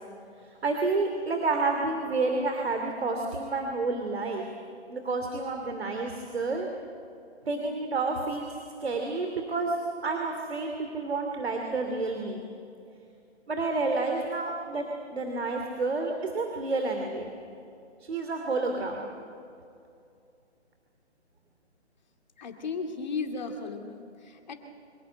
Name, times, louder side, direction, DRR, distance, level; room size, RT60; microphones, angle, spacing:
voice 1, 0.6-4.4 4.9-6.7 7.5-8.5 8.8-9.8 10.0-12.4 13.5-17.3 18.0-19.1, right 3 dB, 60° right, 3 dB, 2.8 m, -29 dB
voice 2, 22.4-24.5, left 4 dB, 40° left, 4 dB, 2.3 m, -35 dB
25.5 x 17.5 x 9.0 m, 2.6 s
hypercardioid pair, 170°, 34 cm